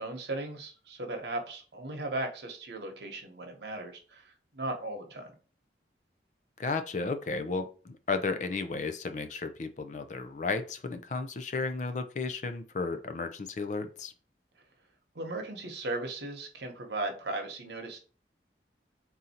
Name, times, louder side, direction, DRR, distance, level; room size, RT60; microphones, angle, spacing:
voice 1, 0.0-5.3 15.1-18.0, right 2 dB, 75° right, 4 dB, 1.0 m, -37 dB
voice 2, 6.6-14.1, left 4 dB, 45° left, 8 dB, 0.4 m, -33 dB
3.8 x 2.7 x 4.2 m, 0.37 s
head